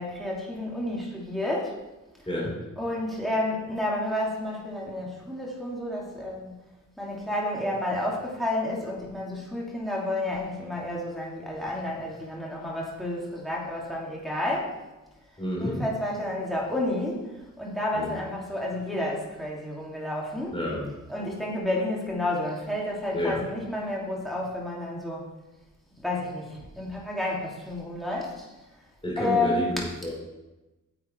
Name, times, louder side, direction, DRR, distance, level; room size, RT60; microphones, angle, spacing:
voice 1, 0.0-1.8 2.2-2.3 2.8-6.6 7.0-14.7 15.6-20.6 21.1-25.3 26.0-28.5 29.2-29.8, left 1 dB, ahead, -4 dB, 2.8 m, -30 dB
voice 2, 15.4-15.8 17.9-18.1 20.5-20.9 23.1-23.4 29.0-30.2, left 1 dB, 15° left, -4 dB, 3.3 m, -29 dB
10.0 x 7.3 x 4.6 m, 1.0 s
wide cardioid pair, 90°, 34 cm